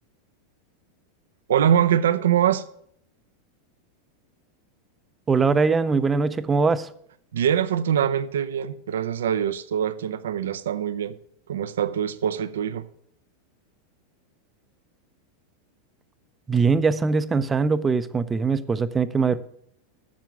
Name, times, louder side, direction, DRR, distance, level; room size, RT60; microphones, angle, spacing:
voice 1, 1.5-2.6 7.3-11.2 11.5-12.9, right 9 dB, 85° right, 0.5 m, -23 dB
voice 2, 5.3-6.9 16.5-19.4, right 4 dB, 20° right, 0.5 m, -21 dB
7.4 x 6.8 x 5.9 m
hypercardioid pair, 115°, 0 cm